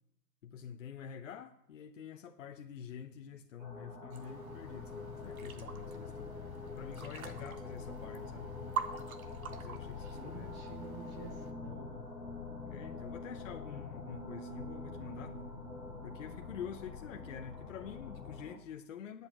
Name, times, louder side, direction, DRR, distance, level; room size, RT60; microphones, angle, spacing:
voice 1, 0.4-8.5 9.5-10.6 12.7-15.4 16.0-19.3, left 8 dB, 50° left, 0.8 m, -47 dB
sound 1, 3.6-18.6, left 2 dB, 5° right, 1.4 m, -47 dB
sound 2, 4.1-11.5, right 7 dB, 55° right, 1.4 m, -46 dB
sound 3, 4.5-18.4, left 7 dB, 70° left, 1.3 m, -48 dB
voice 2, 9.9-12.0, right 4 dB, 25° right, 2.0 m, -50 dB
8.7 x 8.2 x 8.9 m
hypercardioid pair, 155°, 50 cm